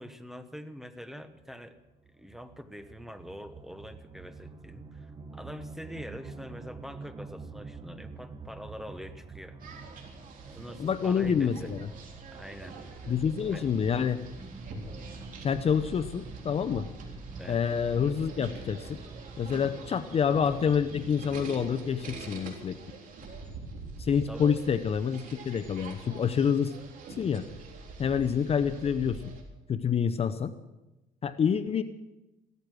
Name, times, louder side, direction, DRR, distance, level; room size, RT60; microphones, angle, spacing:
voice 1, 0.0-1.8 2.2-9.6 10.5-11.7 12.3-12.8 13.5-13.7 17.4-17.6 24.3-24.5, equal, ahead, 10 dB, 1.1 m, -44 dB
sound 1, 1.4-20.6, right 4 dB, 25° right, 1.2 m, -47 dB
sound 2, 9.6-29.4, right 3 dB, 55° right, 3.7 m, -45 dB
voice 2, 10.8-11.9 13.1-14.2 15.4-16.9 17.5-19.0 19.4-22.8 24.0-26.7 27.2-27.5 28.0-29.2 29.7-30.5 31.2-31.8, left 7 dB, 35° left, 10 dB, 0.7 m, -27 dB
16.0 x 13.5 x 6.2 m, 1.0 s
cardioid pair, 110°, 17 cm